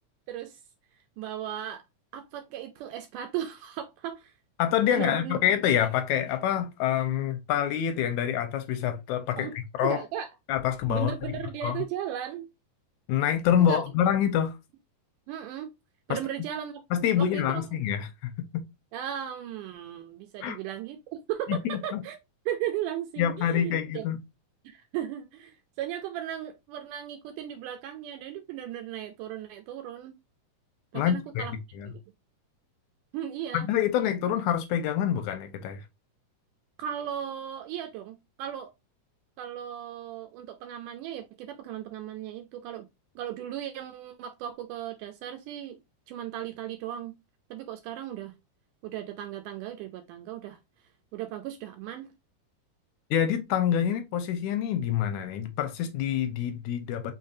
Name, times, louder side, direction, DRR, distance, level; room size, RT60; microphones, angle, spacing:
voice 1, 0.3-0.6 1.2-1.8 2.1-4.3 4.9-5.4 9.4-9.5 9.8-10.3 10.9-12.5 13.6-13.8 15.3-15.7 16.1-16.8 17.2-17.8 18.9-22.2 22.5-24.0 24.6-30.2 30.9-31.5 33.1-33.7 36.8-38.7 39.4-42.9 43.2-45.8 46.1-47.1 47.5-48.3 48.8-50.6 51.1-52.1, right 11 dB, 80° right, 2.1 m, -36 dB
voice 2, 4.6-10.0 10.5-11.8 13.1-14.5 16.1-16.2 16.9-18.6 20.4-20.6 21.5-22.0 23.2-24.2 30.9-31.9 33.5-35.8 53.1-57.1, left 10 dB, 80° left, 1.8 m, -27 dB
5.0 x 3.7 x 2.6 m
omnidirectional pair, 3.7 m